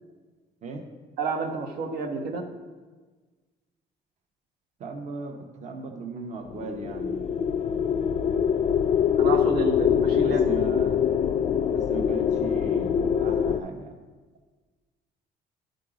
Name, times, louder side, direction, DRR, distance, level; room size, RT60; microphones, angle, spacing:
voice 1, 1.2-2.5 9.2-10.4, right 4 dB, 75° right, 2 dB, 1.0 m, -29 dB
voice 2, 4.8-7.4 10.2-11.0 11.7-14.0, right 4 dB, 45° right, 3 dB, 0.9 m, -37 dB
sound 1, 6.5-13.6, left 8 dB, 40° left, 0.4 m, -24 dB
10.5 x 3.9 x 5.0 m, 1.4 s
cardioid pair, 110°, 17 cm